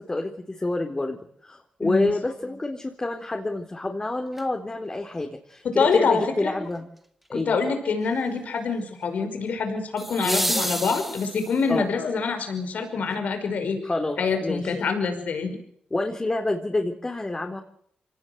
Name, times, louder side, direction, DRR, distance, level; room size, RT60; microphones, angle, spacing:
voice 1, 0.1-6.9 7.3-7.6 10.2-10.7 11.7-11.9 13.8-14.7 15.9-17.6, left 2 dB, 30° left, 3 dB, 3.9 m, -28 dB
voice 2, 1.8-2.1 5.6-6.5 7.3-13.8 14.2-15.5, left 5 dB, 75° left, 7 dB, 5.5 m, -25 dB
sound 1, 4.3-4.4 10.0-11.8 14.0-14.1, right 1 dB, 5° right, 2.4 m, -29 dB
25.5 x 18.5 x 8.1 m, 0.69 s
cardioid pair, 55°, 3 cm